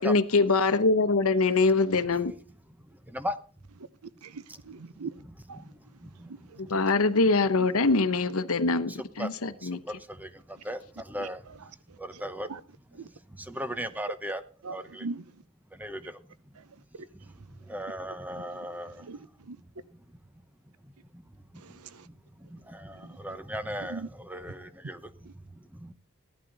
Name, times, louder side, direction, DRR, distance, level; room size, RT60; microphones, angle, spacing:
voice 1, 0.0-2.3 6.7-9.8, left 3 dB, 70° left, 1.0 m, -23 dB
voice 2, 4.2-5.1 5.5-5.6 6.5-6.6 11.2-11.3 12.5-12.6 12.9-13.1 14.6-15.2 19.0-19.2 19.5-19.6 21.6-22.0 23.9-24.1, right 4 dB, 90° right, 0.7 m, -39 dB
voice 3, 12.0-12.5 13.5-14.4 14.7-15.0 15.8-16.0 17.7-18.9 22.5-25.0 25.8-25.9, equal, 10° right, 0.9 m, -36 dB
15.5 x 11.5 x 4.0 m
head